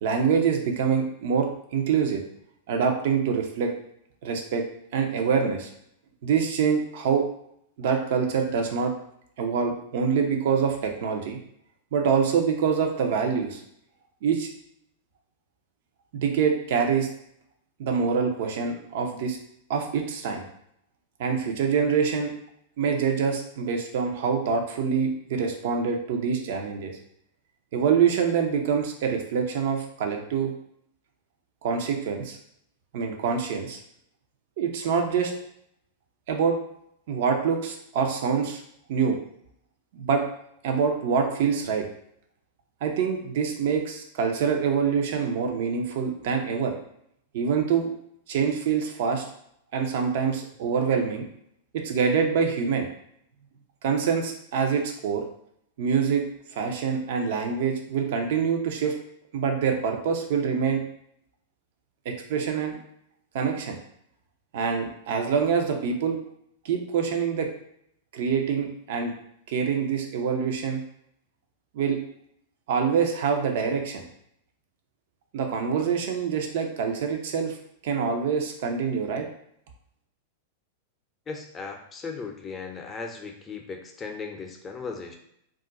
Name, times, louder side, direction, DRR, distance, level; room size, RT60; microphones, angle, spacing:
voice 1, 0.0-2.2 2.7-3.7 4.2-4.7 4.9-5.7 6.2-7.2 7.8-8.9 9.4-11.4 11.9-13.6 14.2-14.5 16.1-17.1 17.8-19.4 19.7-20.4 21.2-22.3 22.8-26.9 27.7-30.5 31.6-32.4 32.9-33.8 34.6-35.3 36.3-36.6 37.1-38.6 38.9-39.2 39.9-40.2 40.6-41.9 42.8-46.7 47.3-47.9 48.3-49.3 49.7-51.3 51.7-52.9 53.8-55.2 55.8-56.2 56.5-58.9 59.3-60.8 62.1-62.8 63.3-63.8 64.5-66.2 66.6-67.5 68.1-69.1 69.5-70.8 71.7-72.0 72.7-74.0 75.3-77.6 77.8-79.3, right 6 dB, 65° right, 4 dB, 0.6 m, -25 dB
voice 2, 81.3-85.2, left 4 dB, 20° left, 2 dB, 0.6 m, -37 dB
2.4 x 2.2 x 3.8 m, 0.72 s
hypercardioid pair, 110°, 0 cm